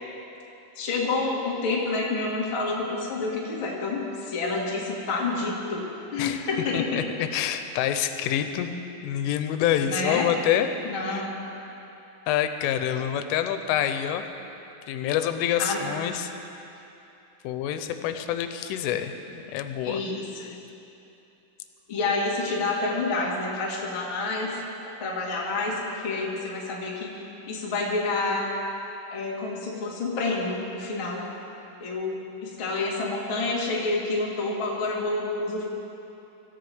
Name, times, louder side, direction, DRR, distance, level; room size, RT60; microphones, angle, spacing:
voice 1, 0.7-5.8 6.1-7.0 9.8-10.3 10.8-11.4 15.6-15.8 19.8-20.5 21.9-24.5 25.0-25.7 26.0-27.2 27.5-28.5 29.1-31.3 31.8-32.1 32.4-35.6, left 3 dB, 60° left, -5 dB, 1.3 m, -28 dB
voice 2, 6.7-8.8 9.0-10.7 11.0-11.2 12.3-14.3 14.9-16.3 17.4-20.0, left 10 dB, 85° left, 8 dB, 3.2 m, -27 dB
25.0 x 14.0 x 3.6 m, 2.9 s
omnidirectional pair, 5.7 m